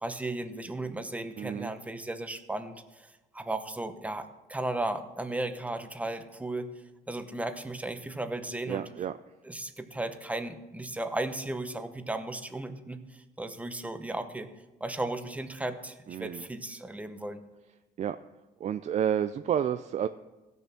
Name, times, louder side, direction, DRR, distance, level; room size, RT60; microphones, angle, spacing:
voice 1, 0.0-6.7 7.1-8.9 9.4-14.5 14.8-17.4, right 2 dB, 10° right, 9 dB, 1.0 m, -35 dB
voice 2, 1.4-1.7 8.7-9.2 16.1-16.5 18.0-18.2 18.6-20.1, right 9 dB, 45° right, 11 dB, 0.4 m, -30 dB
16.0 x 6.8 x 5.9 m, 1.1 s
cardioid pair, 110°, 17 cm